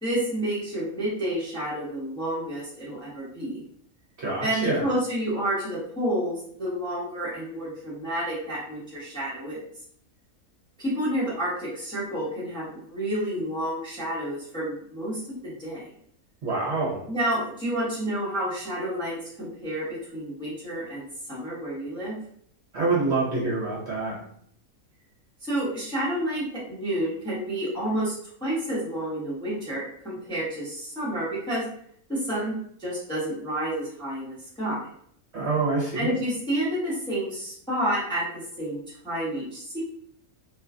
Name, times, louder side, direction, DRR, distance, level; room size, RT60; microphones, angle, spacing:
voice 1, 0.0-3.6 4.4-9.6 10.8-15.9 17.1-22.1 25.4-28.1 28.4-31.7 32.1-34.9 35.9-39.8, right 1 dB, 5° left, -9 dB, 0.8 m, -30 dB
voice 2, 4.2-4.9 16.4-17.0 22.7-24.1 35.3-36.1, right 3 dB, 55° right, -6 dB, 0.9 m, -26 dB
2.9 x 2.3 x 2.4 m, 0.65 s
omnidirectional pair, 1.5 m